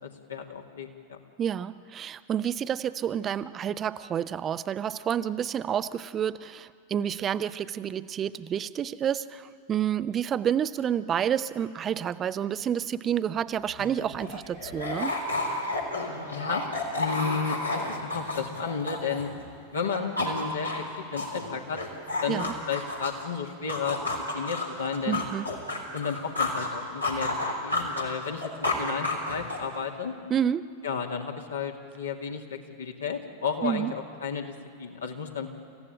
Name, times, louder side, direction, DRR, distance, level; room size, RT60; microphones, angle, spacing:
voice 1, 0.0-1.2 13.8-14.0 16.3-16.6 17.0-19.3 19.7-21.8 22.2-24.1 24.3-25.2 25.9-30.1 30.8-35.5, left 6 dB, 70° left, 2 dB, 2.2 m, -33 dB
voice 2, 1.4-15.1 22.3-22.5 25.1-25.5 30.3-30.7 33.6-33.9, right 9 dB, 25° right, 15 dB, 0.6 m, -29 dB
sound 1, 13.6-13.7 13.9-19.5 19.8-23.3 23.7-26.7 27.0-29.8, left 2 dB, 85° left, 3.7 m, -31 dB
27.5 x 15.5 x 9.0 m, 2.2 s
figure-of-eight pair, 90°, 0 cm